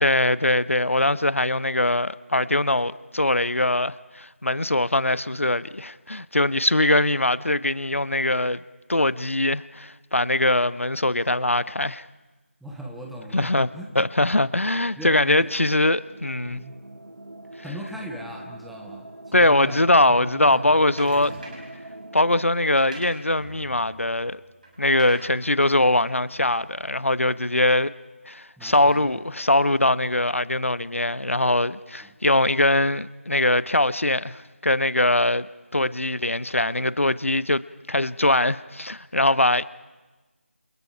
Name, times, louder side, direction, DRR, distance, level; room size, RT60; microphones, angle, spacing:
voice 1, 0.0-8.6 8.9-12.1 13.3-13.7 14.0-16.6 19.3-21.3 22.1-24.4 24.8-27.9 28.3-35.5 35.7-37.6 37.9-39.7, left 1 dB, 70° left, 0.8 m, -22 dB
voice 2, 12.6-14.0 15.0-15.5 16.4-16.8 17.6-20.7 21.3-21.5 28.6-29.2 32.0-32.1, equal, ahead, 0.8 m, -39 dB
sound 1, 13.7-22.4, right 1 dB, 75° right, 1.1 m, -44 dB
sound 2, 21.0-21.8 22.6-27.3, right 2 dB, 35° right, 6.0 m, -44 dB
30.0 x 28.5 x 5.8 m
figure-of-eight pair, 165°, 7 cm